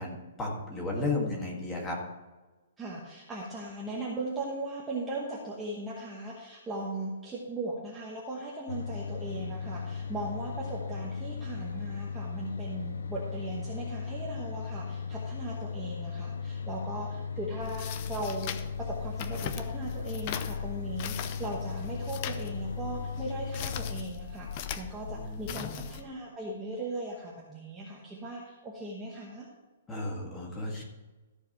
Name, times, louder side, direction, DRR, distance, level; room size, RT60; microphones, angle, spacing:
voice 1, 0.0-2.0 25.2-25.9 29.9-30.8, left 2 dB, 10° left, -2 dB, 1.7 m, -34 dB
voice 2, 2.8-29.5, right 2 dB, 5° right, -5 dB, 1.1 m, -38 dB
sound 1, 8.7-24.1, left 5 dB, 90° left, 0.5 m, -37 dB
sound 2, 17.6-26.0, left 8 dB, 25° left, 0.5 m, -39 dB
14.0 x 4.8 x 5.9 m, 1.1 s
hypercardioid pair, 175°, 0 cm